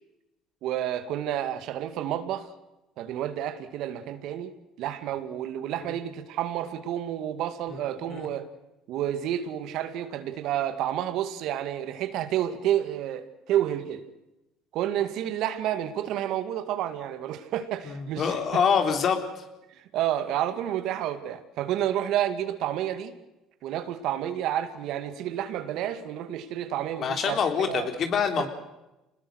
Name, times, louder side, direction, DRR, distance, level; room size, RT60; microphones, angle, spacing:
voice 1, 0.6-2.5 3.0-8.5 8.9-14.0 14.7-18.6 19.7-23.1 23.6-27.9 28.4-28.5, right 11 dB, 70° right, 10 dB, 2.2 m, -30 dB
voice 2, 17.8-19.2 27.0-28.5, left 6 dB, 50° left, 6 dB, 3.9 m, -25 dB
26.5 x 20.0 x 6.5 m, 0.97 s
supercardioid pair, 85°, 0 cm